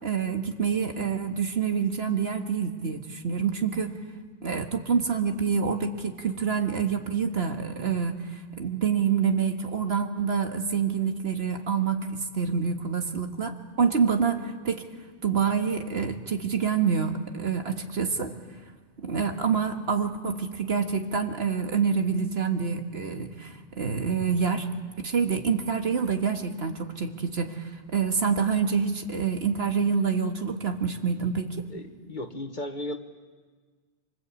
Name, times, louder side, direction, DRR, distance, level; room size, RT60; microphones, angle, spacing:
voice 1, 0.0-4.0 4.4-14.9 15.2-18.4 19.0-24.7 25.0-31.7, right 6 dB, 60° right, 5 dB, 1.9 m, -27 dB
voice 2, 31.7-33.0, left 1 dB, 45° left, 7 dB, 1.6 m, -35 dB
26.0 x 25.5 x 8.4 m, 1.5 s
omnidirectional pair, 1.2 m